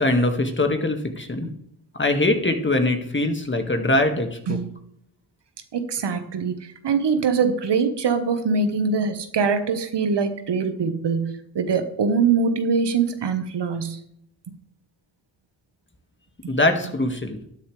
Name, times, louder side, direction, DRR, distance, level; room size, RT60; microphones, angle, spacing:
voice 1, 0.0-1.5 2.0-4.6 16.5-17.4, left 2 dB, 25° left, 5 dB, 2.0 m, -22 dB
voice 2, 5.7-14.0, right 5 dB, 65° right, 8 dB, 1.4 m, -23 dB
13.0 x 9.4 x 3.4 m, 0.71 s
supercardioid pair, 45°, 45 cm